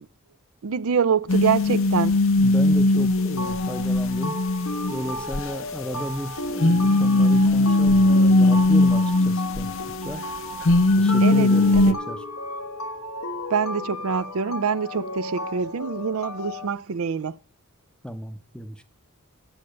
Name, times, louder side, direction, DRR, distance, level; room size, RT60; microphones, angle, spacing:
voice 1, 0.6-2.2 11.2-12.0 13.5-17.4, right 6 dB, 70° right, 0.5 m, -25 dB
sound 1, 1.3-5.4 6.6-10.3 10.6-11.9, left 2 dB, 60° left, 0.8 m, -19 dB
voice 2, 2.4-4.4 4.9-10.2 11.0-12.2 18.0-18.8, equal, 5° left, 0.7 m, -34 dB
sound 2, 2.9-16.7, left 1 dB, 80° left, 1.1 m, -34 dB
8.9 x 8.6 x 6.5 m
head